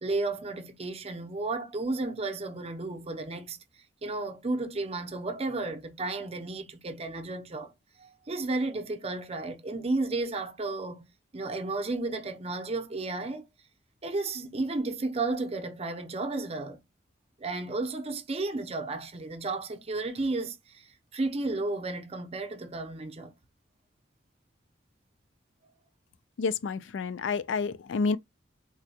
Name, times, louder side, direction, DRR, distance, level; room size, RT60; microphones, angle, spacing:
voice 1, 0.0-3.6 4.0-7.7 8.0-11.1 11.3-13.4 14.0-16.8 17.4-23.3, right 2 dB, 35° right, 0.6 m, -33 dB
voice 2, 26.4-28.2, left 4 dB, 80° left, 0.4 m, -29 dB
3.8 x 2.2 x 2.7 m
head